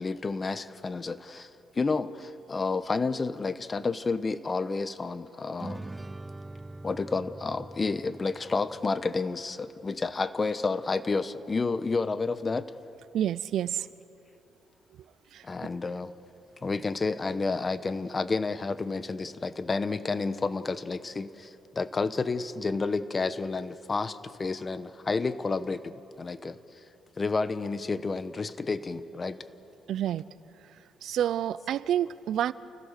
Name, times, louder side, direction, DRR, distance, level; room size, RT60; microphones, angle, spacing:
voice 1, 0.0-1.5 1.7-5.9 6.8-12.7 15.4-16.1 16.6-26.6 27.2-29.4, left 4 dB, 30° left, 13 dB, 1.0 m, -30 dB
sound 1, 5.6-9.2, right 2 dB, 15° right, 0.6 m, -43 dB
voice 2, 13.1-13.9 15.3-15.4 29.9-30.3 31.0-32.5, right 10 dB, 75° right, 18 dB, 0.5 m, -28 dB
29.5 x 16.0 x 6.7 m, 2.7 s
cardioid pair, 90°, 0 cm